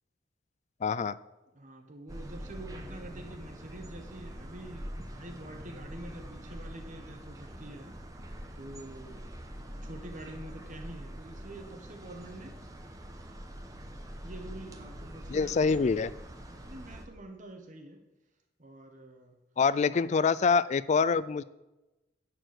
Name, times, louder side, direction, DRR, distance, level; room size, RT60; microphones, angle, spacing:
voice 1, 0.8-1.2 15.3-16.1 19.6-21.4, left 5 dB, 40° left, 18 dB, 0.3 m, -25 dB
voice 2, 1.5-9.3 9.6-12.6 14.2-15.8 16.5-18.0 18.6-19.4, right 1 dB, 45° right, 4 dB, 1.2 m, -46 dB
sound 1, 2.1-17.1, equal, 20° right, 1.0 m, -44 dB
10.5 x 4.6 x 7.8 m, 1.0 s
head